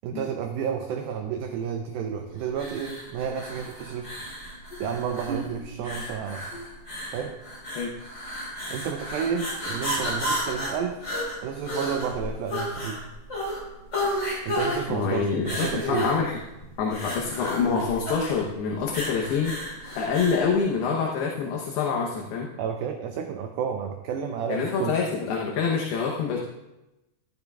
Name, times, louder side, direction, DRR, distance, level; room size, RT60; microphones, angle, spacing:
voice 1, 0.0-4.2 4.8-6.5 7.1-7.3 8.7-11.0 11.4-13.0 14.5-16.1 22.6-25.0, right 7 dB, 80° right, 5 dB, 2.2 m, -31 dB
sound 1, 2.5-20.5, equal, 15° left, 4.2 m, -32 dB
voice 2, 14.9-16.4 16.8-19.6 20.0-22.5 24.5-26.4, left 5 dB, 75° left, -1 dB, 2.8 m, -26 dB
15.0 x 12.5 x 2.4 m, 0.97 s
omnidirectional pair, 4.9 m